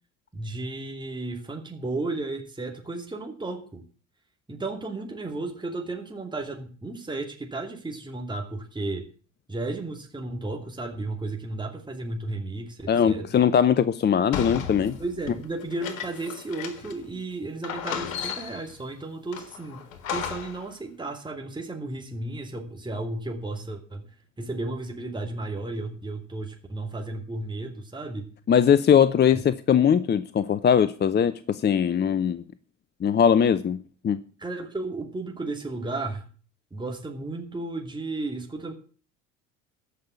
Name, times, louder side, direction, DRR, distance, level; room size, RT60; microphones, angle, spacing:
voice 1, 0.3-3.8 4.5-9.1 9.5-13.4 15.0-19.8 20.1-24.1 24.4-28.3 28.9-29.0 34.4-36.2 36.7-38.7, right 2 dB, 10° right, 2.7 m, -34 dB
voice 2, 12.9-15.0 28.5-32.4 33.0-34.2, left 8 dB, 25° left, 0.7 m, -21 dB
sound 1, 14.3-17.1 17.3-17.4 17.6-18.7 19.3-20.7, left 7 dB, 80° left, 1.6 m, -34 dB
14.0 x 5.6 x 8.3 m
hypercardioid pair, 65°, 39 cm